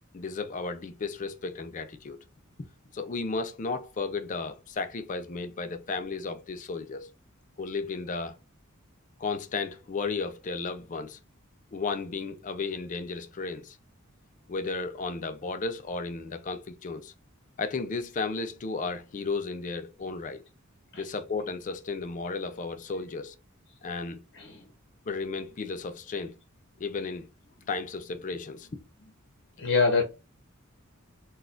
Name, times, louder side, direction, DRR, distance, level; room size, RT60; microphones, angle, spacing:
voice 1, 0.1-2.2 2.6-2.7 2.9-7.1 7.6-8.3 9.2-11.2 11.7-13.8 14.5-17.1 17.6-20.4 21.0-23.3 23.8-24.2 25.1-26.4 26.8-27.3 27.7-28.8, left 4 dB, 35° left, 0.4 m, -34 dB
voice 2, 29.6-30.0, left 4 dB, 55° left, 0.8 m, -24 dB
4.0 x 2.3 x 2.5 m
head